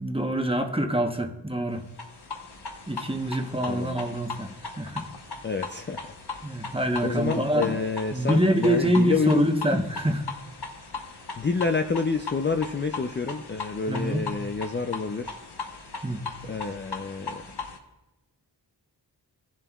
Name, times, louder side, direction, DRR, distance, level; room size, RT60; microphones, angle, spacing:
voice 1, 0.0-1.8 2.9-5.0 6.4-7.8 8.1-10.3 13.9-14.2 16.0-16.2, right 1 dB, 15° right, 4 dB, 1.0 m, -25 dB
sound 1, 1.9-17.8, left 4 dB, 65° left, 1.1 m, -39 dB
voice 2, 3.7-4.0 5.4-6.0 6.5-6.8 7.0-9.5 11.4-15.4 16.4-17.4, left 4 dB, 25° left, 6 dB, 0.4 m, -28 dB
16.5 x 7.3 x 2.3 m, 1.0 s
wide cardioid pair, 60°, 44 cm